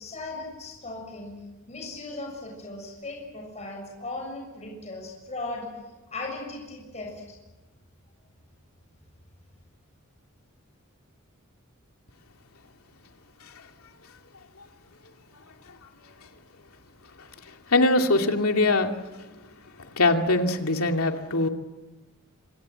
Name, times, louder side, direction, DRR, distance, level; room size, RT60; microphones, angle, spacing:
voice 1, 0.0-1.4 1.7-5.7 6.1-7.1, left 2 dB, 30° left, 1 dB, 6.9 m, -37 dB
voice 2, 17.7-18.9 20.0-21.5, left 2 dB, 80° left, 4 dB, 2.5 m, -22 dB
27.0 x 26.0 x 7.9 m, 1.1 s
head